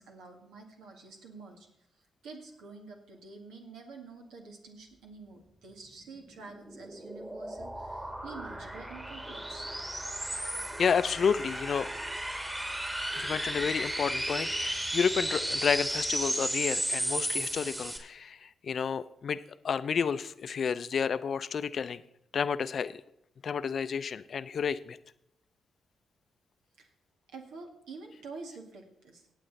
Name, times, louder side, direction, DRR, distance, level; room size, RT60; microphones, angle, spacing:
voice 1, 0.0-1.7 2.2-9.7 26.8-26.9 27.3-29.3, right 4 dB, 80° right, 2 dB, 2.0 m, -48 dB
sound 1, 6.2-18.0, right 1 dB, 20° right, 2.6 m, -34 dB
sound 2, 7.6-16.3, right 1 dB, 35° right, 6.0 m, -51 dB
voice 2, 10.8-11.9 13.2-19.4 19.6-22.0 22.3-23.0 23.4-25.0, left 6 dB, 60° left, 15 dB, 0.5 m, -30 dB
18.0 x 7.5 x 4.1 m, 0.79 s
hypercardioid pair, 45°, 0 cm